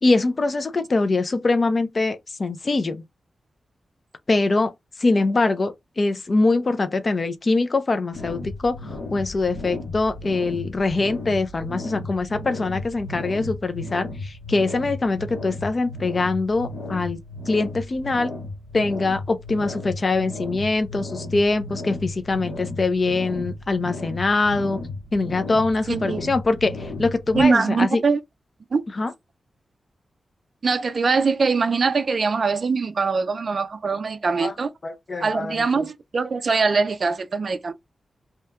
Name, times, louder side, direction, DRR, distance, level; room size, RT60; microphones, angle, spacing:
voice 1, 0.0-3.0 4.3-4.7 5.0-8.8 9.1-17.2 17.5-18.3 18.7-24.8 25.1-28.0 29.0-29.1 34.4-34.5 34.8-35.9, left 3 dB, 35° left, 0.4 m, -23 dB
sound 1, 8.1-27.4, left 2 dB, 80° left, 0.9 m, -35 dB
voice 2, 25.9-26.3 27.3-28.2 28.7-28.8 30.6-34.7 35.2-37.7, right 4 dB, 45° right, 0.3 m, -22 dB
2.8 x 2.2 x 3.4 m
wide cardioid pair, 170°, 0 cm